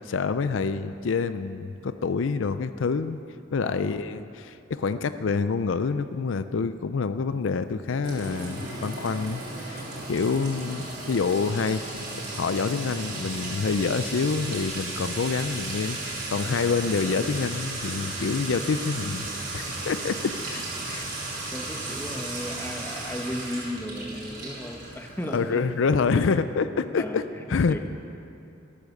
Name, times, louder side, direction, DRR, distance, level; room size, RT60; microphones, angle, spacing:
voice 1, 0.0-3.2 3.5-11.8 12.3-19.3 19.5-21.1 25.3-27.8, left 5 dB, 75° left, 12 dB, 0.5 m, -27 dB
voice 2, 3.6-4.0 19.0-19.4 21.5-25.7 26.9-27.8, equal, 10° left, 4 dB, 1.0 m, -36 dB
Sink (filling or washing) / Trickle dribble / Fill (with liquid), 8.0-25.5, right 2 dB, 55° right, 4.2 m, -35 dB
13.5 x 13.5 x 6.5 m, 2.8 s
head